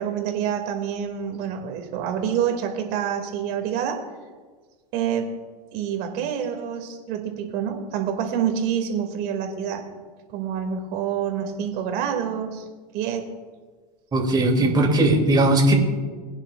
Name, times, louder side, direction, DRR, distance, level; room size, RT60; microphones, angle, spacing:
voice 1, 0.0-4.0 4.9-5.3 5.7-9.8 10.3-12.7 12.9-13.2, right 8 dB, 50° right, 4 dB, 2.4 m, -27 dB
voice 2, 14.1-15.7, right 1 dB, 20° right, 1 dB, 2.7 m, -18 dB
21.5 x 9.8 x 2.5 m, 1.5 s
hypercardioid pair, 105°, 21 cm